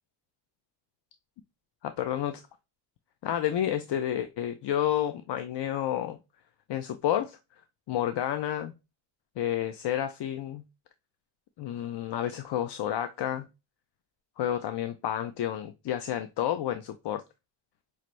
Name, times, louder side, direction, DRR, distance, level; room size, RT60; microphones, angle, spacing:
voice 1, 1.8-2.4 3.2-6.2 6.7-7.4 7.9-8.7 9.4-10.6 11.6-13.5 14.4-17.2, left 11 dB, 65° left, 0.5 m, -30 dB
5.5 x 2.6 x 3.1 m
wide cardioid pair, 130°, 46 cm